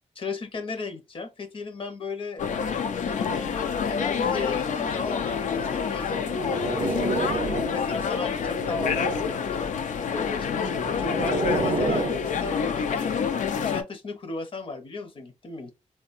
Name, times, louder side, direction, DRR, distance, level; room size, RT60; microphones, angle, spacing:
voice 1, 0.2-10.6 11.0-13.1 13.6-15.7, left 3 dB, 45° left, 0.7 m, -36 dB
sound 1, 2.4-13.8, left 6 dB, 85° left, 0.4 m, -27 dB
sound 2, 6.1-7.9 8.3-9.5 10.4-12.2, right 4 dB, 65° right, 0.6 m, -30 dB
3.6 x 2.2 x 2.4 m
wide cardioid pair, 155°, 12 cm